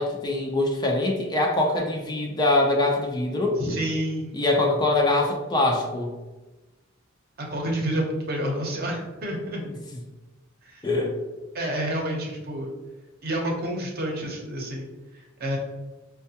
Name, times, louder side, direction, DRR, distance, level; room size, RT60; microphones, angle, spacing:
voice 1, 0.0-3.6 4.3-6.1 9.7-9.8 10.8-11.1, left 2 dB, 20° left, 1 dB, 0.4 m, -23 dB
voice 2, 3.6-4.4 7.4-9.6 10.6-10.8 11.5-12.7 13.2-14.9 15.4-15.6, right 1 dB, 50° right, 0 dB, 0.7 m, -29 dB
4.5 x 2.2 x 2.7 m, 1.1 s
head